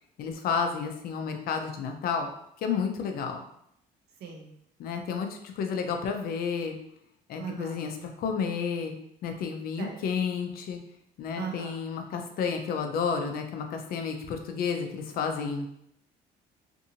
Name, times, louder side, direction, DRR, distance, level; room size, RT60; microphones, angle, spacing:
voice 1, 0.2-2.3 2.6-3.4 4.8-6.8 7.3-9.0 9.2-10.8 11.2-15.7, left 6 dB, 60° left, 5 dB, 0.5 m, -31 dB
voice 2, 7.4-7.7 9.8-9.9 11.4-11.7, right 6 dB, 75° right, 0 dB, 0.7 m, -37 dB
2.6 x 2.6 x 2.7 m, 0.74 s
cardioid pair, 110°, 17 cm